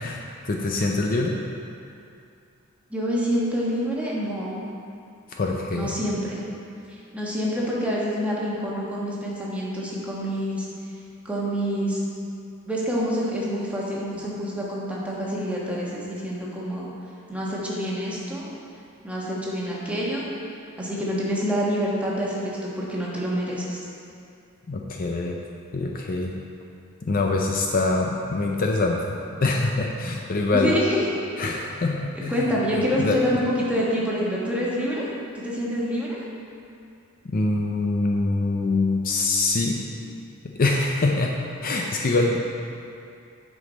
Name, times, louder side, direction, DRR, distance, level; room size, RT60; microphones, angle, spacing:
voice 1, 0.0-1.4 5.3-5.9 24.7-25.4 25.7-26.3 27.0-30.7 31.4-32.4 33.0-33.2 37.2-39.8 40.4-41.4 41.6-42.4, left 3 dB, 40° left, 0 dB, 0.5 m, -24 dB
voice 2, 2.9-4.5 5.7-6.4 6.9-10.7 11.2-12.0 12.7-16.9 17.3-18.5 19.0-20.3 20.8-23.8 30.5-31.1 32.1-35.1 35.3-36.2, equal, 5° right, -6 dB, 1.3 m, -27 dB
9.5 x 5.2 x 4.0 m, 2.5 s
head